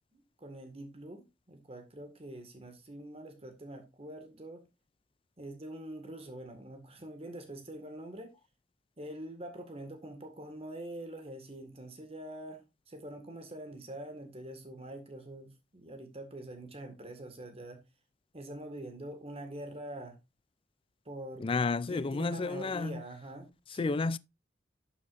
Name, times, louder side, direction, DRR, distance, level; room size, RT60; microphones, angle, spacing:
voice 1, 0.1-4.6 5.4-8.3 9.0-17.8 18.3-20.2 21.1-21.5 21.9-24.0, right 1 dB, 30° right, 1.9 m, -45 dB
voice 2, 21.4-23.0 23.8-24.2, left 3 dB, 30° left, 0.4 m, -31 dB
11.0 x 8.2 x 2.6 m
head